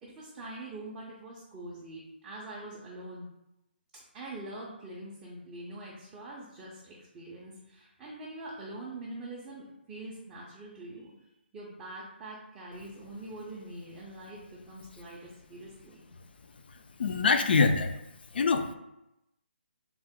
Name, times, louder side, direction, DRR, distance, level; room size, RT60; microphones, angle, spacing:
voice 1, 0.0-3.3 3.9-11.1 11.5-16.0, right 2 dB, 10° right, -6 dB, 0.4 m, -44 dB
voice 2, 17.0-17.9 18.3-18.7, left 4 dB, 60° left, 8 dB, 0.4 m, -24 dB
3.5 x 2.0 x 3.5 m, 0.88 s
hypercardioid pair, 165°, 6 cm